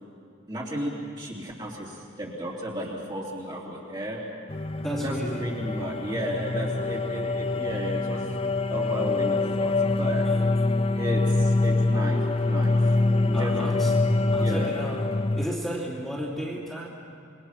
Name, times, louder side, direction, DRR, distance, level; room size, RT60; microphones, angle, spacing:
voice 1, 0.5-4.2 5.0-8.3 8.7-10.3 10.9-12.8 13.2-13.6 14.3-14.7, equal, 20° right, -4 dB, 3.3 m, -34 dB
sound 1, 4.5-15.5, left 2 dB, 30° left, 0.5 m, -25 dB
voice 2, 4.8-5.4 10.2-10.4 13.3-13.9 14.3-15.0 15.3-16.9, equal, ahead, -5 dB, 2.9 m, -33 dB
27.0 x 22.0 x 5.9 m, 2.5 s
head